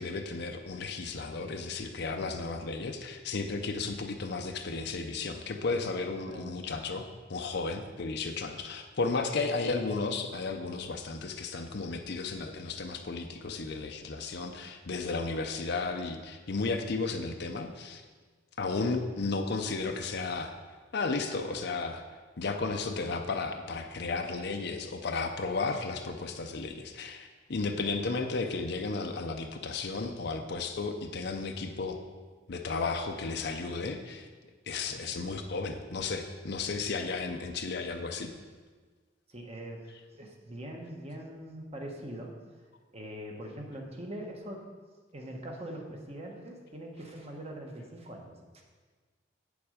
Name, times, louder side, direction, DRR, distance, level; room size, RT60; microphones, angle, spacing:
voice 1, 0.0-18.0 18.6-20.5 20.9-22.0 22.4-32.0 32.5-34.3 34.7-38.3, left 3 dB, 60° left, 4 dB, 0.6 m, -34 dB
voice 2, 39.3-39.8 40.1-42.3 42.9-44.7 45.1-48.6, right 1 dB, 30° right, 1 dB, 1.2 m, -42 dB
8.5 x 7.1 x 5.0 m, 1.4 s
head